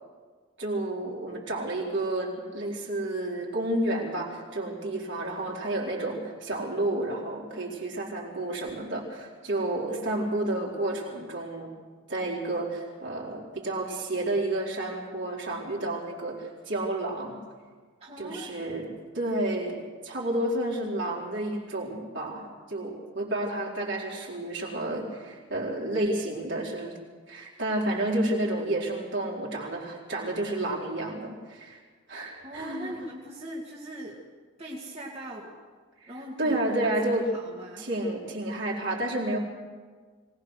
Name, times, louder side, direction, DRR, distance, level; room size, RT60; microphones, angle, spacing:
voice 1, 0.6-11.8 12.1-17.4 18.2-27.0 27.3-31.8 32.1-32.9 36.0-36.1 36.4-37.3 37.8-39.4, right 1 dB, 55° right, -3 dB, 4.7 m, -30 dB
voice 2, 18.0-18.5 32.4-34.2 34.6-35.6 36.1-37.9, right 1 dB, 30° right, -3 dB, 2.5 m, -40 dB
23.5 x 19.0 x 6.5 m, 1.5 s
head